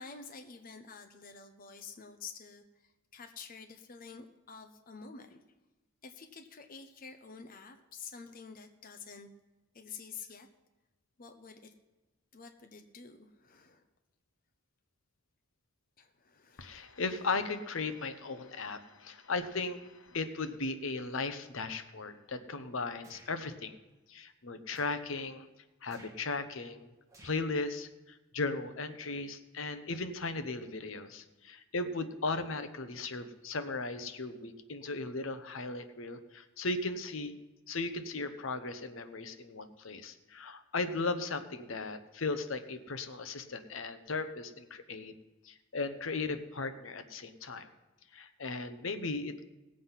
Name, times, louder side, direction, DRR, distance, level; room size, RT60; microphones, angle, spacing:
voice 1, 0.0-5.4 6.0-9.3 9.7-10.5 11.2-11.7 12.3-13.8 16.0-16.7, left 5 dB, 45° left, 6 dB, 0.8 m, -49 dB
voice 2, 16.6-23.8 24.1-25.5 25.8-26.9 27.2-37.3 37.7-45.1 45.4-47.7 48.1-49.4, left 3 dB, 65° left, 10 dB, 0.9 m, -37 dB
sound 1, 23.0-23.3 24.7-25.1 25.8-26.2 27.1-27.5, right 1 dB, 15° right, 2.0 m, -56 dB
19.0 x 7.6 x 5.7 m, 1.1 s
head